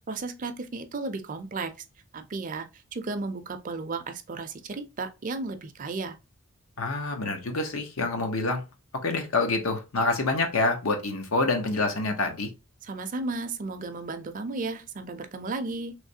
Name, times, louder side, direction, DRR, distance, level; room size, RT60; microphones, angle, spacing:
voice 1, 0.0-1.7 2.1-2.7 2.9-6.2 12.8-15.9, right 3 dB, 40° right, 0.5 m, -34 dB
voice 2, 6.8-8.6 9.0-12.5, left 3 dB, 90° left, 0.8 m, -27 dB
3.2 x 3.1 x 2.7 m
head